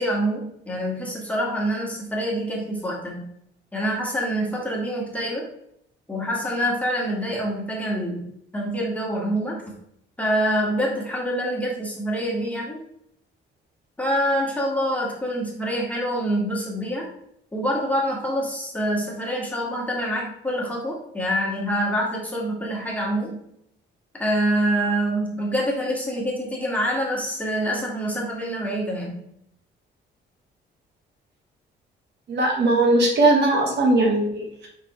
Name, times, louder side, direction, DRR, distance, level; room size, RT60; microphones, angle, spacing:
voice 1, 0.0-3.3 3.7-5.5 6.1-9.6 10.2-12.8 14.0-17.1 17.5-23.4 24.2-29.2, equal, 5° left, -3 dB, 2.2 m, -26 dB
voice 2, 32.3-34.7, right 2 dB, 60° right, 0 dB, 1.8 m, -19 dB
5.6 x 5.3 x 3.3 m, 0.74 s
cardioid pair, 90°, 20 cm